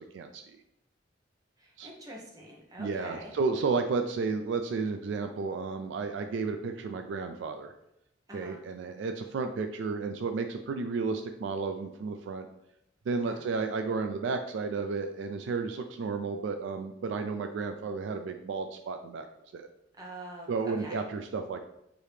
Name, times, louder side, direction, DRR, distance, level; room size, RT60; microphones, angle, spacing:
voice 1, 1.6-3.3 8.3-8.6 13.2-13.4 20.0-21.0, right 1 dB, 20° right, -2 dB, 0.9 m, -45 dB
voice 2, 2.8-7.7 8.3-12.5 13.1-19.3 19.5-19.7 20.5-21.6, right 4 dB, 65° right, 6 dB, 0.3 m, -32 dB
4.9 x 2.8 x 3.2 m, 0.80 s
head